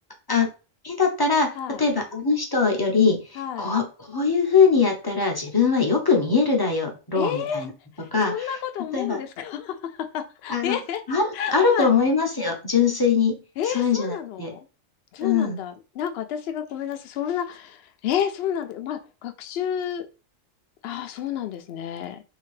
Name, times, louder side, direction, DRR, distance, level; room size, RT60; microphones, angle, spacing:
voice 1, 0.8-7.7 8.1-8.6 8.9-9.2 10.5-10.8 11.1-13.4 13.6-14.5 15.2-15.6, left 5 dB, 25° left, 0.5 m, -22 dB
voice 2, 3.4-3.7 7.2-7.6 8.3-11.0 11.3-11.9 13.6-14.6 15.1-20.1 20.8-22.2, left 9 dB, 65° left, 0.7 m, -30 dB
3.3 x 2.8 x 3.2 m
omnidirectional pair, 1.3 m